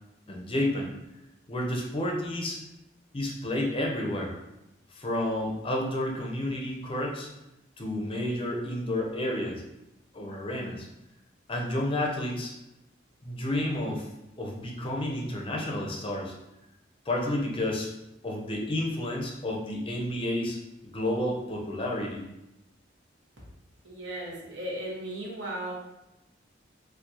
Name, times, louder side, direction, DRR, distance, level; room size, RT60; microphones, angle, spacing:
voice 1, 0.3-0.9 1.5-2.6 3.1-4.3 5.0-7.3 7.8-9.6 10.1-10.9 11.5-12.5 13.2-14.1 14.4-16.3 17.1-17.9 18.2-22.3, left 1 dB, 30° left, 0 dB, 0.6 m, -30 dB
voice 2, 23.8-25.7, right 1 dB, 70° right, -4 dB, 1.1 m, -36 dB
4.4 x 2.3 x 2.7 m, 0.91 s
head